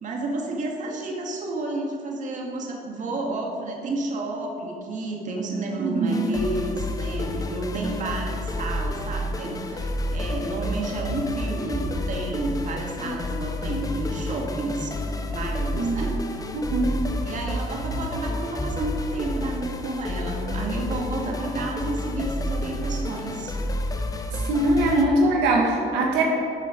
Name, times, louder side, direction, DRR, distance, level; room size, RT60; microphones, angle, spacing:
voice 1, 0.0-14.9 15.3-16.1 17.2-23.6 25.1-25.3, right 2 dB, 50° right, 0 dB, 2.0 m, -31 dB
voice 2, 5.8-6.3 15.7-16.0 16.5-16.9 24.3-26.2, right 2 dB, 90° right, 0 dB, 1.6 m, -22 dB
sound 1, 6.1-25.0, left 1 dB, 20° left, 0.8 m, -30 dB
13.0 x 6.8 x 5.2 m, 2.8 s
cardioid pair, 110°, 17 cm